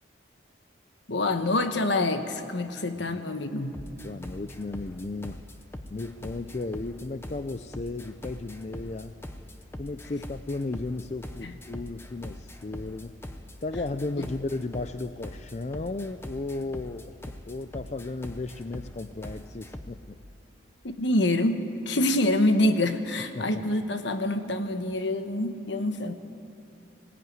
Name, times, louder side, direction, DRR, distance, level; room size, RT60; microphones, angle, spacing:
voice 1, 1.1-3.8 11.4-11.5 20.8-26.1, left 1 dB, 70° left, 8 dB, 1.2 m, -26 dB
sound 1, 3.7-20.0, left 1 dB, 10° left, 0.8 m, -42 dB
voice 2, 4.0-5.5 5.9-9.2 9.8-13.1 13.6-17.1 17.5-20.2 23.4-23.7, left 2 dB, 35° left, 11 dB, 0.4 m, -35 dB
19.5 x 17.5 x 9.5 m, 2.8 s
head